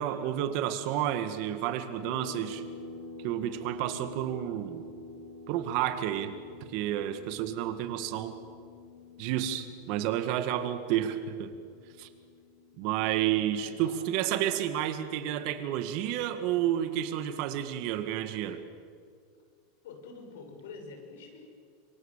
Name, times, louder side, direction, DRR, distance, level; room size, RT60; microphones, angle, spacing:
voice 1, 0.0-2.6 3.2-4.8 5.5-6.4 6.7-8.3 9.2-11.5 12.0-12.1 12.8-18.6, right 11 dB, 50° right, 9 dB, 2.0 m, -30 dB
sound 1, 2.0-15.1, left 3 dB, 65° left, 4.2 m, -48 dB
voice 2, 13.2-14.0 19.8-21.4, left 4 dB, 85° left, 3 dB, 6.7 m, -47 dB
26.5 x 24.0 x 7.5 m, 2.2 s
supercardioid pair, 150°, 0 cm